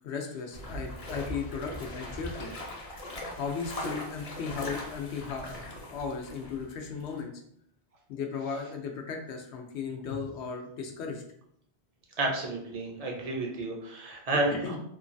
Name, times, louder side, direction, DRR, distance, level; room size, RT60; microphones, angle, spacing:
voice 1, 0.0-2.5 3.4-7.3 8.1-11.2 13.1-13.3 14.3-14.8, left 5 dB, 85° left, 3 dB, 0.9 m, -36 dB
sound 1, 0.5-6.7 7.0-7.2, left 1 dB, 45° left, 0.6 m, -40 dB
voice 2, 12.2-14.8, right 2 dB, 50° right, 0 dB, 0.5 m, -31 dB
3.0 x 2.2 x 2.5 m, 0.69 s
omnidirectional pair, 1.1 m